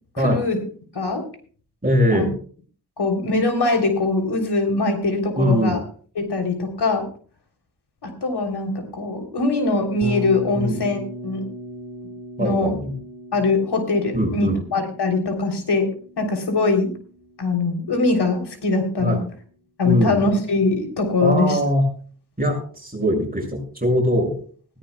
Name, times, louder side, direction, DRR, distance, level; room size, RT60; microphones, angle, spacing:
voice 1, 0.2-0.6 0.9-1.2 2.1-2.3 3.0-5.8 6.2-7.1 8.0-11.5 12.4-12.7 13.3-15.9 16.2-16.9 17.4-19.2 19.8-21.6, left 3 dB, 85° left, 5 dB, 3.5 m, -22 dB
voice 2, 1.8-2.3 5.4-5.8 10.5-10.8 12.4-12.9 14.1-14.6 19.0-19.2 19.8-20.2 21.2-21.9 22.4-24.4, equal, 20° right, 0 dB, 6.1 m, -21 dB
Bass guitar, 10.0-18.1, equal, 10° left, 7.4 m, -36 dB
18.5 x 16.0 x 2.3 m, 0.43 s
cardioid pair, 60°, 39 cm